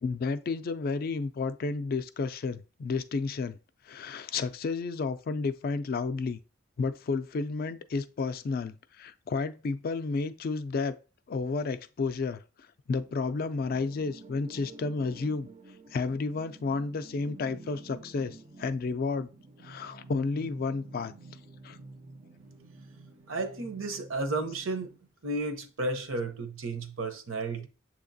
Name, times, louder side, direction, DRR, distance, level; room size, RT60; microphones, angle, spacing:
voice 1, 0.0-3.6 3.8-6.4 6.8-11.0 11.3-15.5 15.9-19.3 19.6-21.1 21.6-21.8, left 4 dB, 45° left, 0.3 m, -31 dB
sound 1, 13.0-25.0, right 2 dB, 30° right, 0.4 m, -50 dB
voice 2, 23.3-24.9 25.2-27.7, right 2 dB, 75° right, 0.7 m, -33 dB
7.0 x 2.8 x 2.6 m
head